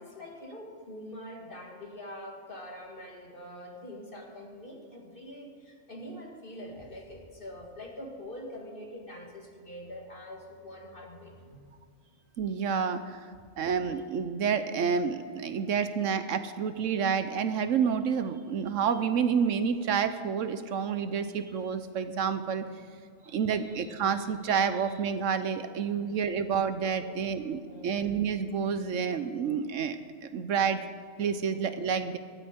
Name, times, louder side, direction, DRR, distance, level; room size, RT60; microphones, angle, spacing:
voice 1, 0.0-11.6 22.7-22.9 23.2-24.2 25.9-26.3 27.0-27.9 31.4-31.5, left 1 dB, 45° left, 0 dB, 2.2 m, -45 dB
voice 2, 12.4-13.2 13.6-22.6 23.3-30.8 31.2-32.2, right 6 dB, 75° right, 10 dB, 1.1 m, -29 dB
17.0 x 13.5 x 3.6 m, 2.2 s
omnidirectional pair, 1.3 m